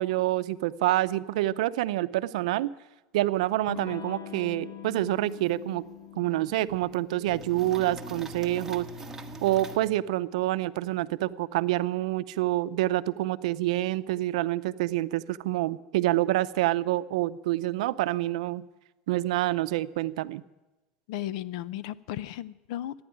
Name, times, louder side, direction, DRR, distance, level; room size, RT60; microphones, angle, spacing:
voice 1, 0.0-2.7 3.1-5.8 6.2-8.9 9.4-18.6 19.1-20.4, right 16 dB, 85° right, 14 dB, 0.6 m, -27 dB
Electric guitar / Strum, 3.7-9.0, left 9 dB, 55° left, 1.5 m, -44 dB
sound 1, 5.4-5.5 5.7-5.8 6.3-6.9 7.3-9.8, right 1 dB, 10° right, 1.3 m, -42 dB
voice 2, 21.1-23.0, left 13 dB, 70° left, 18 dB, 0.6 m, -35 dB
15.0 x 9.6 x 10.0 m, 1.1 s
supercardioid pair, 140°, 4 cm